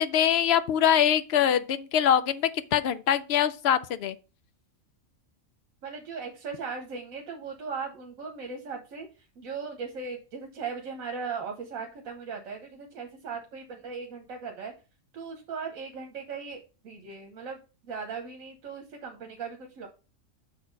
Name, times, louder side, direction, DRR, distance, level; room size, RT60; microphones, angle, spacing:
voice 1, 0.0-4.2, left 9 dB, 65° left, 0.7 m, -23 dB
voice 2, 5.8-9.1 9.4-14.7 15.1-19.9, right 5 dB, 75° right, 1.3 m, -38 dB
6.2 x 4.2 x 5.1 m
omnidirectional pair, 1.4 m